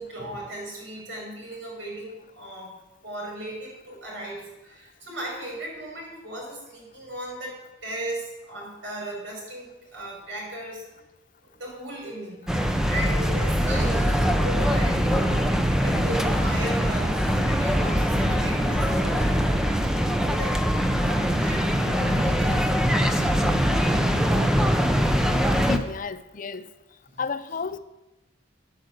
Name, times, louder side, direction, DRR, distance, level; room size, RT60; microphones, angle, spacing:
voice 1, 0.0-2.7 3.0-10.8 11.6-12.4 12.9-19.4 20.2-22.6 27.1-27.2, right 1 dB, 75° right, -2 dB, 5.6 m, -36 dB
sound 1, 12.5-25.8, equal, 5° right, 0.9 m, -22 dB
voice 2, 25.7-26.6 27.2-27.8, left 5 dB, 45° left, 13 dB, 0.6 m, -31 dB
10.5 x 8.9 x 8.2 m, 1.0 s
head